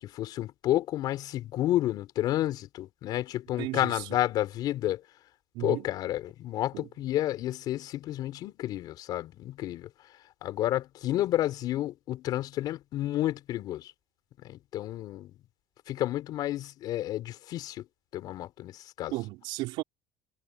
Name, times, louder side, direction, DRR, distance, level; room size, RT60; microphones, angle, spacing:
voice 1, 0.0-5.0 5.6-9.9 10.4-13.9 14.4-15.3 15.9-17.8 18.1-19.1, left 14 dB, 55° left, 4.9 m, -30 dB
voice 2, 3.6-4.0 5.5-5.9 6.7-6.9 19.1-19.8, right 19 dB, 70° right, 5.1 m, -34 dB
cardioid pair, 145°, 8 cm